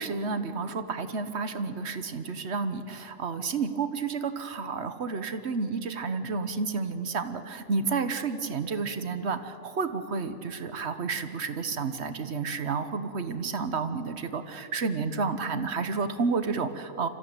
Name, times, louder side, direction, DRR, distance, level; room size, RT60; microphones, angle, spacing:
voice 1, 0.0-17.1, right 4 dB, 50° right, 10 dB, 1.3 m, -31 dB
25.0 x 14.5 x 9.0 m, 2.9 s
omnidirectional pair, 1.5 m